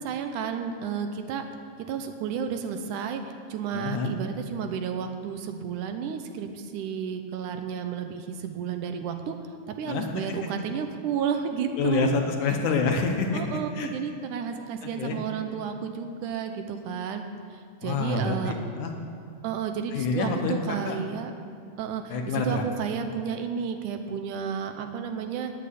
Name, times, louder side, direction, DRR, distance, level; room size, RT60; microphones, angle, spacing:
voice 1, 0.0-1.4 1.9-3.2 3.5-9.4 9.8-12.1 13.3-17.2 17.5-18.5 19.4-21.3 21.8-25.5, right 7 dB, 80° right, 6 dB, 2.2 m, -32 dB
voice 2, 3.7-4.1 9.9-10.4 11.8-13.9 14.8-15.2 17.8-18.9 19.9-21.0 22.1-22.6, left 4 dB, 75° left, 3 dB, 2.4 m, -28 dB
8.9 x 8.5 x 9.5 m, 2.2 s
omnidirectional pair, 3.7 m